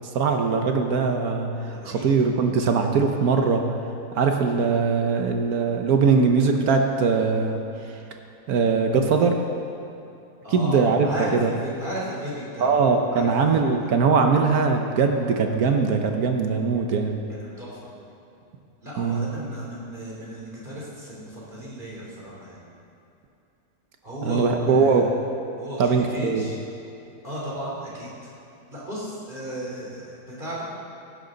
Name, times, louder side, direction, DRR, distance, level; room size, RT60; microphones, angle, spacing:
voice 1, 0.1-1.5 1.9-3.6 4.1-7.6 8.5-9.3 10.5-11.0 11.4-11.5 12.6-17.2 19.0-19.2 24.2-25.0 25.8-26.4, right 5 dB, 70° right, 4 dB, 1.3 m, -21 dB
voice 2, 10.4-13.9 17.3-17.9 18.8-22.7 24.0-25.1 25.6-26.6 27.2-28.3 28.7-30.6, equal, 30° right, -6 dB, 3.7 m, -35 dB
17.0 x 11.0 x 3.9 m, 2.8 s
omnidirectional pair, 1.7 m